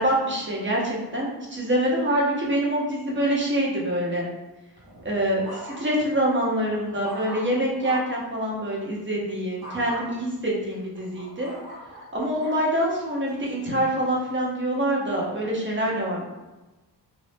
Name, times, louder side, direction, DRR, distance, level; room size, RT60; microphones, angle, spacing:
voice 1, 0.0-4.3 5.0-11.5 12.1-16.3, right 1 dB, 30° right, -3 dB, 1.0 m, -25 dB
sound 1, 4.8-6.1 6.6-8.2 9.6-10.1 10.7-12.6 13.3-13.7, right 1 dB, 70° right, 1.4 m, -41 dB
2.6 x 2.5 x 3.4 m, 1.1 s
cardioid pair, 75°, 40 cm